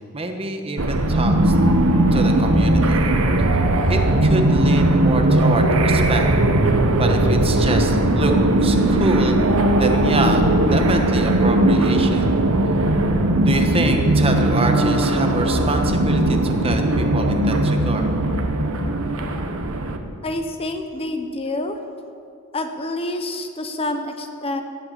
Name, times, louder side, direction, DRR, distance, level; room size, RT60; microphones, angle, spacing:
voice 1, 0.0-1.5 2.1-3.0 3.9-6.3 7.0-8.3 8.6-9.4 9.7-12.3 13.4-18.1, right 2 dB, 25° right, 4 dB, 1.2 m, -26 dB
sound 1, 0.8-20.0, right 1 dB, 75° right, 1.1 m, -18 dB
voice 2, 20.2-21.8 22.5-24.6, left 2 dB, 25° left, 6 dB, 0.8 m, -27 dB
17.0 x 8.2 x 7.5 m, 2.4 s
head